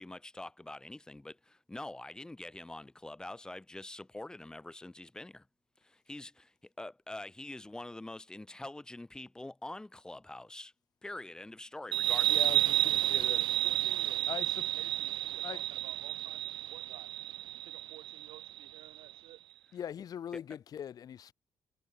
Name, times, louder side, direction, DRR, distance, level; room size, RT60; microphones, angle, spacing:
voice 1, 0.0-5.4 5.8-10.7 11.0-12.4 20.3-20.4, left 2 dB, 10° left, 3.0 m, -45 dB
sound 1, 11.9-19.1, right 14 dB, 65° right, 0.5 m, -31 dB
voice 2, 12.3-13.4 14.3-14.6 15.4-15.6 19.7-21.3, left 9 dB, 45° left, 3.8 m, -41 dB
voice 3, 13.0-14.3 14.6-17.3 17.5-19.4, right 16 dB, 90° right, 6.1 m, -55 dB
cardioid pair, 165°, 9 cm